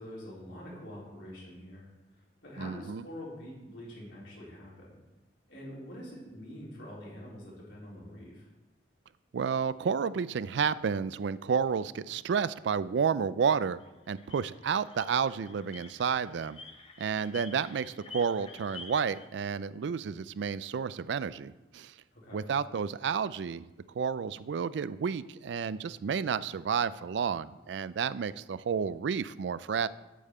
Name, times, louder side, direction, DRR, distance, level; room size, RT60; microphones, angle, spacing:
voice 1, 0.0-5.0 5.5-8.5 22.1-22.5, equal, 85° left, -6 dB, 4.1 m, -45 dB
voice 2, 2.6-3.0 9.3-13.8 14.1-16.6 17.0-21.9 22.3-23.7 23.9-29.9, right 6 dB, 75° right, 16 dB, 0.4 m, -31 dB
sound 1, 13.8-19.3, left 3 dB, 30° left, 0.9 m, -49 dB
8.4 x 5.5 x 7.9 m, 1.1 s
head